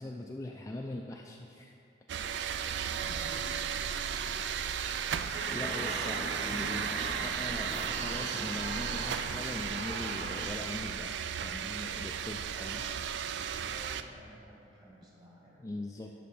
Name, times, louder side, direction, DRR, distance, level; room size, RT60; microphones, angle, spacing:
voice 1, 0.0-1.7 5.2-11.1 11.4-12.8 15.6-16.1, left 2 dB, 15° left, 1 dB, 0.3 m, -41 dB
sound 1, 2.1-14.0, right 8 dB, 70° right, 0.3 m, -35 dB
voice 2, 2.5-4.6 5.3-7.4 12.5-15.7, equal, 25° right, -5 dB, 1.9 m, -52 dB
sound 2, 5.3-10.5, right 1 dB, 45° right, 1.0 m, -40 dB
11.0 x 4.2 x 5.5 m, 2.6 s
head